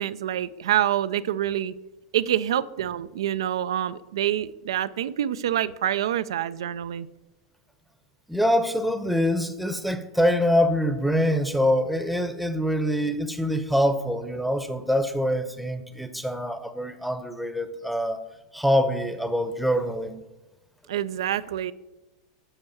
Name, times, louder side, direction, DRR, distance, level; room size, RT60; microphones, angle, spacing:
voice 1, 0.0-1.8 2.1-7.1 20.9-21.7, right 11 dB, 90° right, 0.4 m, -26 dB
voice 2, 8.3-18.2 18.5-20.2, equal, ahead, 0.7 m, -24 dB
8.0 x 4.6 x 7.0 m
supercardioid pair, 140°, 3 cm